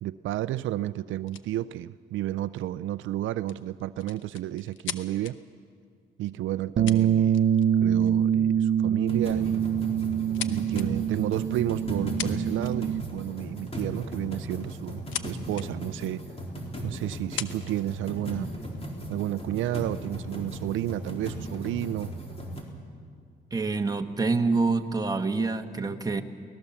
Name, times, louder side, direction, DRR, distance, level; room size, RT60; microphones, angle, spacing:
voice 1, 0.0-5.4 6.2-7.4 7.8-9.6 10.5-16.2 16.8-18.5 19.1-22.1, right 14 dB, 80° right, 14 dB, 0.5 m, -31 dB
sound 1, 1.3-1.5 3.4-5.3 6.4-6.5 6.9-7.7 8.0-8.3 9.2-9.4 9.8-10.9 11.9-12.0 12.2-12.9 14.4-15.3 15.5-15.7 16.3-16.4 17.1-17.8 18.6-19.3, left 10 dB, 80° left, 1.0 m, -38 dB
Bass guitar, 6.8-13.0, right 9 dB, 55° right, 0.8 m, -25 dB
sound 2, 9.1-22.6, equal, 30° left, 4.2 m, -37 dB
voice 2, 23.5-26.2, right 3 dB, 20° right, 5 dB, 1.4 m, -26 dB
24.0 x 18.5 x 7.2 m, 2.2 s
cardioid pair, 90°, 20 cm